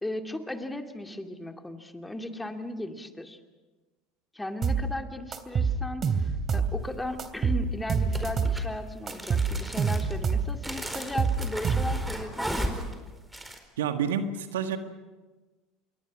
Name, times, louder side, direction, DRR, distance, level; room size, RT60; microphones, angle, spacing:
voice 1, 0.0-3.4 4.3-12.8, left 1 dB, 10° left, 5 dB, 2.5 m, -36 dB
sound 1, 4.6-4.9 5.3-6.7 7.2-8.6 9.1-10.5 10.9-12.2, right 5 dB, 35° right, 2.9 m, -26 dB
sound 2, 6.8-7.3 8.1-13.6, right 1 dB, 5° right, 4.5 m, -36 dB
voice 2, 13.8-14.8, right 7 dB, 80° right, 8 dB, 1.7 m, -28 dB
28.0 x 23.0 x 6.3 m, 1.2 s
hypercardioid pair, 75°, 0 cm